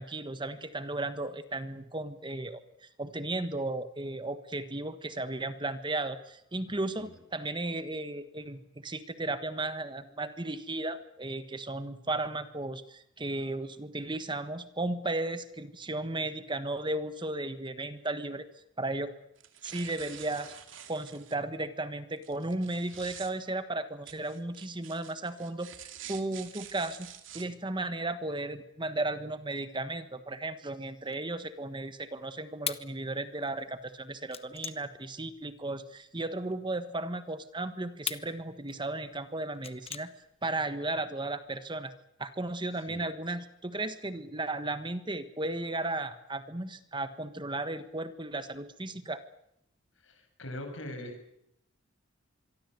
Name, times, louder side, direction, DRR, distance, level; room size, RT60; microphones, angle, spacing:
voice 1, 0.0-18.5 18.8-19.1 19.6-20.5 20.9-40.1 40.4-41.9 42.2-49.2, right 2 dB, 25° right, 11 dB, 1.4 m, -35 dB
voice 2, 6.7-7.2 42.9-43.0 50.0-51.2, left 1 dB, 75° left, 5 dB, 7.7 m, -42 dB
sound 1, 19.4-21.4 22.2-23.3 24.1-27.4, right 10 dB, 70° right, 2.7 m, -47 dB
sound 2, 31.0-36.5 37.1-40.6, left 9 dB, 30° left, 1.2 m, -42 dB
25.5 x 23.0 x 8.1 m, 0.76 s
head